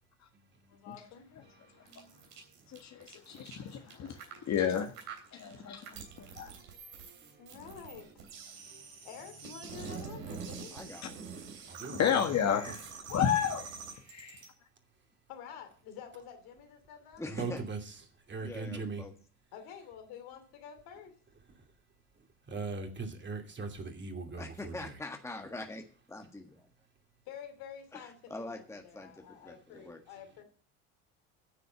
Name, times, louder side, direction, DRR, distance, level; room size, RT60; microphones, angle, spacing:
voice 1, 0.7-1.3 7.4-8.4 9.0-10.8 15.3-17.2 19.5-21.1 27.3-30.4, left 8 dB, 60° left, 2.8 m, -49 dB
sound 1, 1.9-14.5, right 6 dB, 75° right, 3.6 m, -46 dB
voice 2, 2.7-4.9 5.3-6.5 11.9-12.8 13.1-13.8 14.1-14.4, left 8 dB, 40° left, 1.6 m, -31 dB
voice 3, 4.0-4.5 5.9-7.6 8.7-8.9 11.7-12.3 17.4-17.8 18.3-19.0 22.5-24.7, right 4 dB, 25° right, 2.6 m, -41 dB
voice 4, 10.7-11.2 12.4-12.5 17.2-17.6 18.4-19.1 24.4-26.7 27.9-30.0, left 2 dB, 5° left, 1.5 m, -44 dB
10.0 x 6.8 x 7.4 m
hypercardioid pair, 75°, 40 cm